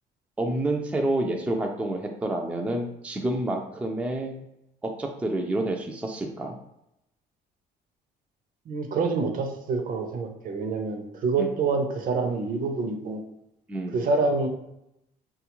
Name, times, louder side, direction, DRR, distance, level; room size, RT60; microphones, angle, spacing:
voice 1, 0.4-4.4 4.8-6.6 11.4-11.5 13.7-14.0, right 1 dB, 10° right, 2 dB, 0.3 m, -28 dB
voice 2, 8.7-13.2 13.9-14.5, right 4 dB, 55° right, 5 dB, 0.6 m, -27 dB
3.4 x 2.3 x 2.9 m, 0.83 s
cardioid pair, 110°, 17 cm